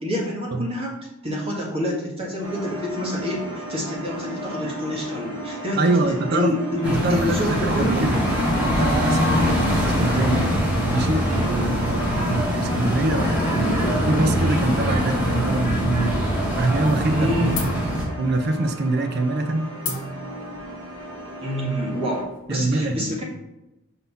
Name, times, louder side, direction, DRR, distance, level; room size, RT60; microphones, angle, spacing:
voice 1, 0.0-0.9 1.2-8.1 9.2-9.6 17.1-17.6 21.4-23.2, left 1 dB, 25° right, -2 dB, 1.7 m, -27 dB
sound 1, 2.4-22.2, right 1 dB, 75° right, 1.9 m, -36 dB
voice 2, 5.7-6.5 6.8-8.2 8.6-10.5 10.9-16.2 16.5-17.5 18.2-19.7 22.5-23.2, right 2 dB, 50° right, 7 dB, 0.6 m, -24 dB
sound 2, 6.8-18.0, equal, 5° right, 1.8 m, -23 dB
sound 3, 17.6-22.7, left 3 dB, 60° left, 1.6 m, -37 dB
5.4 x 4.1 x 5.5 m, 0.93 s
head